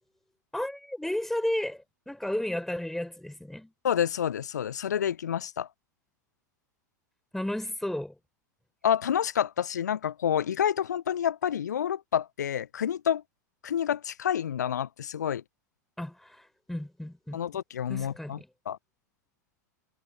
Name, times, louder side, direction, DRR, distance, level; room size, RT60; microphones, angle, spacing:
voice 1, 0.5-3.7 7.3-8.2 16.0-17.4 17.9-18.5, left 1 dB, 5° left, 5.5 m, -33 dB
voice 2, 3.8-5.7 8.8-13.2 13.6-15.4 17.3-18.4 18.7-18.8, left 9 dB, 70° left, 0.6 m, -28 dB
figure-of-eight pair, 85°, 10 cm